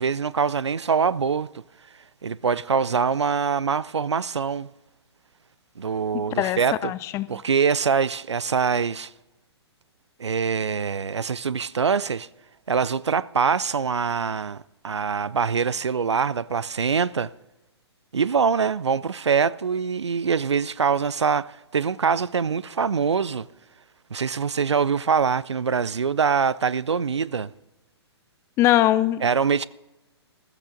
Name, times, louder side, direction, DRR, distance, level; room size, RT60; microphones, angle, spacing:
voice 1, 0.0-1.5 2.2-4.7 5.8-6.9 7.3-9.1 10.2-12.3 12.7-17.3 18.1-23.5 24.1-27.5 29.2-29.7, right 6 dB, 80° right, 0.4 m, -24 dB
voice 2, 6.3-7.3 28.6-29.2, left 14 dB, 20° left, 0.4 m, -21 dB
14.5 x 13.5 x 3.9 m
figure-of-eight pair, 120°, 14 cm